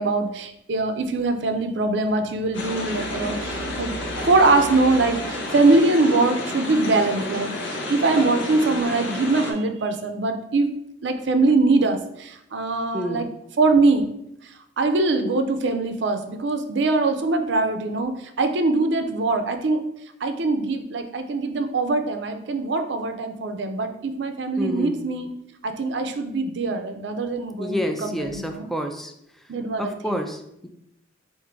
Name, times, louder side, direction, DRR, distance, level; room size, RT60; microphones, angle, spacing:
voice 1, 0.0-3.9 4.3-10.7 11.0-13.3 13.6-14.1 14.8-19.8 20.2-25.3 25.6-28.7 29.5-30.2, right 3 dB, 65° right, 7 dB, 0.5 m, -22 dB
sound 1, 2.5-9.5, left 1 dB, 90° left, 0.8 m, -30 dB
voice 2, 12.9-13.3 24.6-25.0 27.6-29.1 29.8-30.7, equal, ahead, 5 dB, 0.3 m, -29 dB
4.6 x 2.6 x 3.6 m, 0.79 s
head